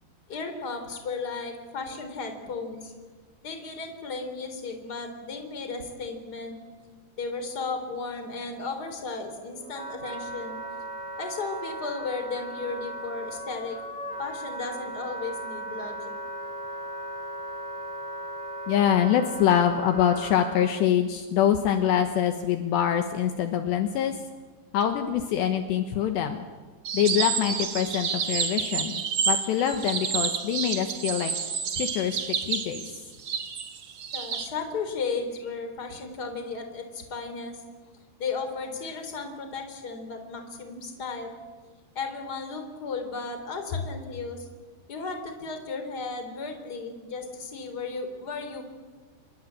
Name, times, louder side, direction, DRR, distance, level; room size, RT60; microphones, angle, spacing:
voice 1, 0.3-2.9 3.4-6.6 7.2-10.6 11.2-13.8 14.2-16.1 34.1-37.6 38.2-41.3 41.9-44.5 44.9-48.6, left 4 dB, 25° left, 6 dB, 3.4 m, -35 dB
Wind instrument woodwind instrument, 9.3-20.7, right 1 dB, 30° right, 0.5 m, -37 dB
voice 2, 18.7-24.1 24.7-26.4 26.9-31.3 31.8-32.8, left 9 dB, 70° left, 7 dB, 3.2 m, -25 dB
sound 1, 26.8-34.5, right 6 dB, 85° right, 1.2 m, -29 dB
28.5 x 21.0 x 8.7 m, 1.4 s
omnidirectional pair, 5.5 m